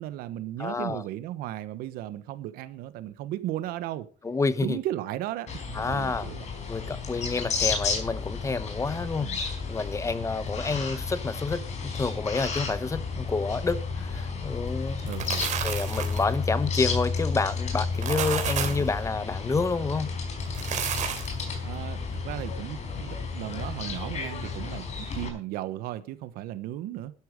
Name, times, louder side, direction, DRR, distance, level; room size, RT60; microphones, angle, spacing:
voice 1, 0.0-4.1 4.6-6.5 9.2-9.4 10.6-10.8 15.0-15.5 18.6-18.8 21.6-27.1, right 14 dB, 90° right, 1.3 m, -35 dB
voice 2, 0.6-1.0 4.2-4.8 5.7-6.3 6.7-15.1 15.6-20.1, left 4 dB, 20° left, 1.0 m, -29 dB
sound 1, 5.5-25.3, left 4 dB, 50° left, 4.7 m, -32 dB
sound 2, 14.9-16.3 17.8-18.9 20.4-21.4, right 8 dB, 55° right, 3.3 m, -31 dB
11.5 x 11.5 x 5.2 m
cardioid pair, 130°, 15 cm